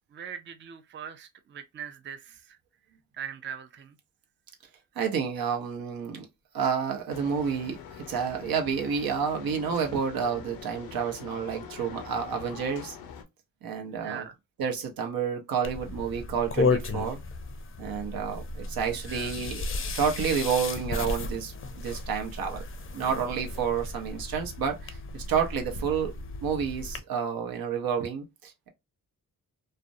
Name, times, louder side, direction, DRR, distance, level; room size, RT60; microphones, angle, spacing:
voice 1, 0.1-2.6 3.1-4.0 14.0-14.4 19.1-19.4, right 8 dB, 35° right, 0.4 m, -41 dB
voice 2, 5.0-6.3 6.5-7.8 8.1-12.9 13.6-14.2 14.6-17.2 17.8-22.6 22.9-26.1 26.4-28.7, right 6 dB, 80° right, 0.7 m, -30 dB
sound 1, 7.1-13.2, left 7 dB, 90° left, 0.5 m, -44 dB
sound 2, 15.6-27.0, left 3 dB, 35° left, 0.5 m, -34 dB
2.4 x 2.0 x 2.5 m
cardioid pair, 60°, 35 cm